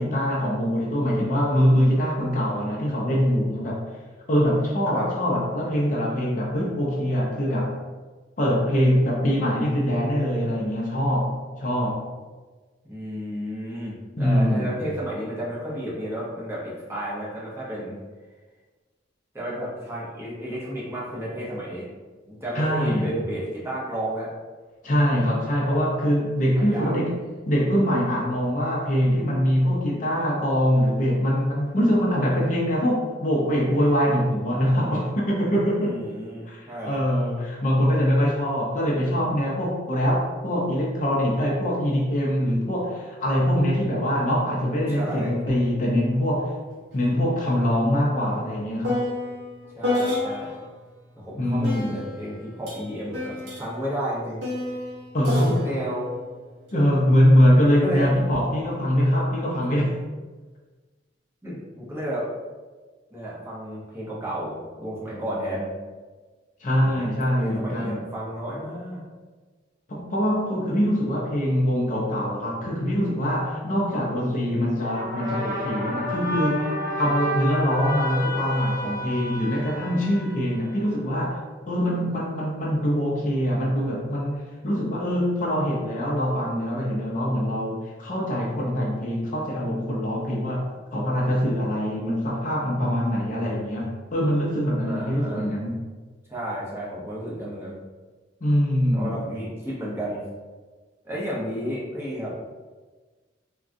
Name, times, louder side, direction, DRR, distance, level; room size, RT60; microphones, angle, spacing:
voice 1, 0.0-3.8 4.3-7.8 8.4-12.1 14.2-14.7 22.5-23.1 24.8-27.2 27.5-36.0 36.5-46.5 46.9-49.0 51.4-52.0 55.1-55.6 56.7-59.9 66.6-68.0 69.9-76.7 76.9-81.4 81.7-95.8 98.4-99.2, equal, 40° left, -3 dB, 0.5 m, -23 dB
voice 2, 12.8-18.0 19.3-21.9 22.2-24.3 26.6-26.9 35.8-37.0 44.9-45.3 49.8-50.5 51.2-54.4 55.3-56.1 57.8-58.1 61.4-62.3 63.1-65.7 66.8-67.1 67.4-69.0 94.8-95.5 96.3-97.8 98.9-100.2 101.0-102.4, equal, 15° right, -7 dB, 0.7 m, -32 dB
sound 1, 45.5-45.6 45.9-50.7 51.6-57.2 58.0-58.4, left 1 dB, 65° right, 0.7 m, -31 dB
sound 2, 74.8-81.2, left 1 dB, 45° right, 1.1 m, -31 dB
3.5 x 2.3 x 2.6 m, 1.3 s
head